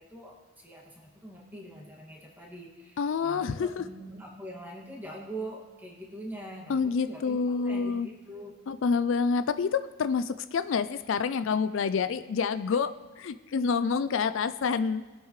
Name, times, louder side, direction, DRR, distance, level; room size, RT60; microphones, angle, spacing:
voice 1, 0.0-8.5, right 1 dB, 10° right, -2 dB, 2.1 m, -43 dB
voice 2, 3.0-3.9 6.7-8.1 8.7-15.0, left 5 dB, 70° left, 12 dB, 0.4 m, -28 dB
21.0 x 8.1 x 3.2 m, 1.3 s
head